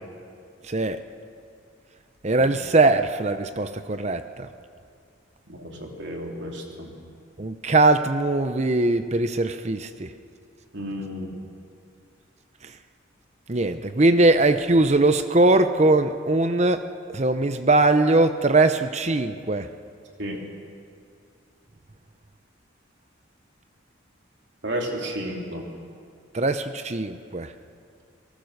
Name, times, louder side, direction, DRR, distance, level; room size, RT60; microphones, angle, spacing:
voice 1, 0.7-1.0 2.2-4.5 7.4-10.1 13.5-16.8 17.1-19.7 26.3-27.5, right 2 dB, 35° right, 10 dB, 0.7 m, -21 dB
voice 2, 5.5-6.9 10.7-11.3 20.2-20.4 24.6-25.7, equal, 60° right, 1 dB, 3.4 m, -32 dB
28.5 x 19.0 x 6.6 m, 2.3 s
head